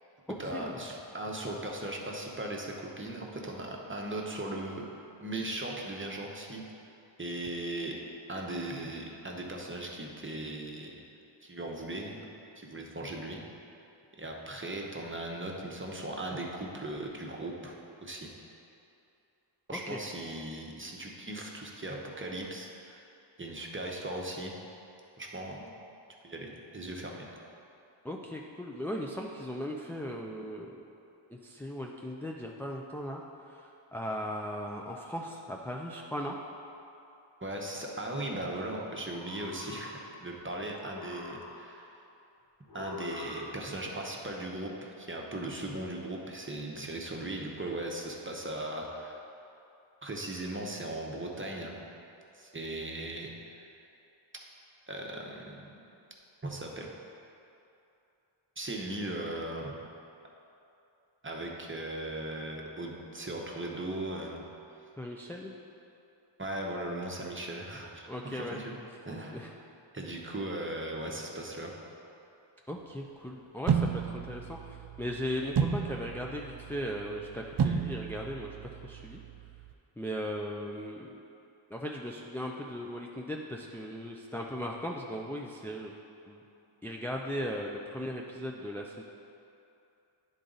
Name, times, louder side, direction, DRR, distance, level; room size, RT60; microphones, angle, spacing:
voice 1, 0.4-4.9 5.2-6.6 7.2-7.9 8.3-11.0 11.4-12.3 12.6-13.4 14.2-17.8 18.0-18.3 19.7-23.1 23.4-24.5 25.2-25.7 26.2-27.3 37.4-41.9 42.7-49.2 50.0-51.8 52.3-53.3 54.9-55.8 56.4-56.9 58.6-59.8 61.2-64.4 66.4-68.8 69.0-69.4 69.9-71.7, right 1 dB, 25° right, -1 dB, 0.9 m, -38 dB
voice 2, 28.0-30.8 31.3-36.4 65.0-65.5 68.1-68.6 69.3-69.5 72.7-79.2 80.0-81.2 81.7-85.9 86.3-86.4 86.8-89.0, equal, 5° left, -1 dB, 0.4 m, -38 dB
sound 1, 39.0-40.4 40.7-42.0 42.7-44.0, left 3 dB, 50° left, 0.8 m, -44 dB
hand hitting table, 73.7-79.7, right 6 dB, 55° right, 0.5 m, -33 dB
10.0 x 4.0 x 3.9 m, 2.8 s
wide cardioid pair, 55°, 49 cm